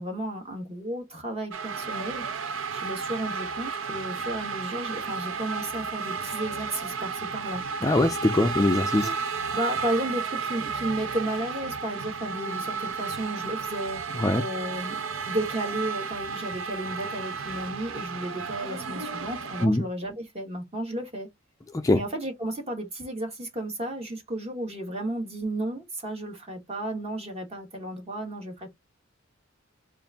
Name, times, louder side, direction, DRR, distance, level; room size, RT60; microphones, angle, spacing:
voice 1, 0.0-2.2 2.7-7.6 9.0-9.1 9.5-14.0 14.3-21.3 21.9-28.7, right 1 dB, 30° right, 1.3 m, -33 dB
sound 1, 1.5-19.7, right 5 dB, 70° right, 0.6 m, -33 dB
voice 2, 7.8-9.0 14.2-14.4 19.6-19.8 21.7-22.0, left 1 dB, 15° left, 0.4 m, -22 dB
3.9 x 2.5 x 3.5 m
head